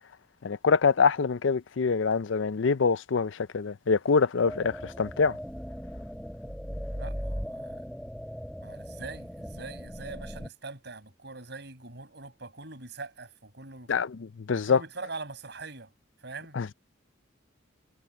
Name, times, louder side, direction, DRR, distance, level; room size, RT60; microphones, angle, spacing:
voice 1, 0.4-5.3 13.9-14.8 16.5-16.7, left 5 dB, 70° left, 0.5 m, -25 dB
sound 1, 4.5-10.5, equal, ahead, 7.4 m, -38 dB
voice 2, 6.9-7.8 8.6-13.9 14.5-15.9 16.2-16.6, right 3 dB, 55° right, 5.8 m, -43 dB
head